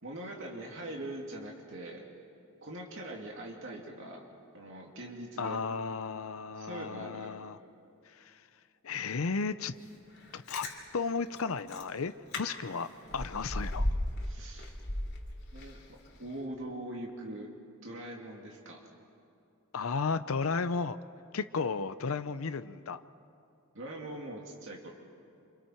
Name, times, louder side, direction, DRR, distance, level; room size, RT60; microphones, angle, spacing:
voice 1, 0.0-2.0 2.6-4.2 4.5-5.6 6.6-7.3 14.2-14.7 15.5-15.8 16.2-17.5 17.8-18.8 23.7-24.9, right 1 dB, 60° right, -1 dB, 2.6 m, -42 dB
voice 2, 5.4-7.6 8.1-8.4 8.8-9.7 10.3-10.7 10.9-12.9 13.1-13.9 19.7-21.0 21.3-23.0, left 4 dB, 75° left, 11 dB, 0.6 m, -34 dB
Chewing mastication, 10.2-10.7 11.4-11.5 11.7-11.9 12.3-12.4 12.7-14.3 14.6-15.8 16.2-16.3, left 1 dB, 50° left, 3.0 m, -34 dB
29.5 x 27.0 x 4.5 m, 2.6 s
head